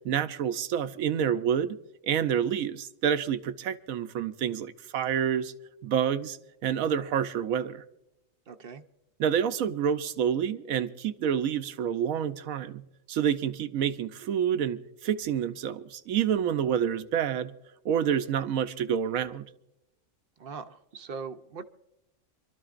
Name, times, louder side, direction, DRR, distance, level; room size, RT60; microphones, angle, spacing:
voice 1, 0.0-1.8 2.0-5.5 5.8-7.8 9.2-12.8 13.1-17.5 17.8-19.5, right 8 dB, 90° right, 1.1 m, -28 dB
voice 2, 8.5-8.8 20.4-21.6, right 5 dB, 50° right, 0.8 m, -40 dB
27.5 x 12.5 x 2.5 m
omnidirectional pair, 1.4 m